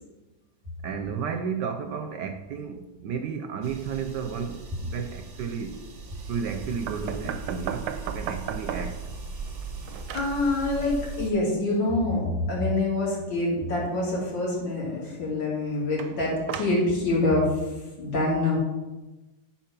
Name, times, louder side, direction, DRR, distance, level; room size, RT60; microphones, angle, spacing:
voice 1, 0.8-5.8 6.3-9.0, right 6 dB, 70° right, 7 dB, 1.1 m, -33 dB
sound 1, 3.6-11.3, right 4 dB, 35° right, 1.0 m, -38 dB
sound 2, 6.9-9.1 9.5-10.4 16.0-16.9, right 8 dB, 90° right, 1.5 m, -35 dB
voice 2, 10.1-18.6, left 2 dB, 65° left, -5 dB, 3.5 m, -26 dB
10.5 x 4.5 x 5.9 m, 1.1 s
omnidirectional pair, 2.2 m